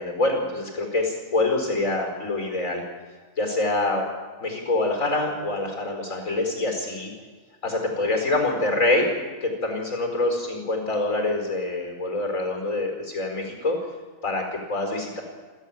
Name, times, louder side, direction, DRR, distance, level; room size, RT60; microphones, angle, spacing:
voice 1, 0.0-2.8 3.4-4.0 4.4-7.1 7.6-13.8 14.2-15.2, left 2 dB, 75° left, 3 dB, 5.1 m, -25 dB
29.5 x 13.0 x 7.4 m, 1.4 s
omnidirectional pair, 1.4 m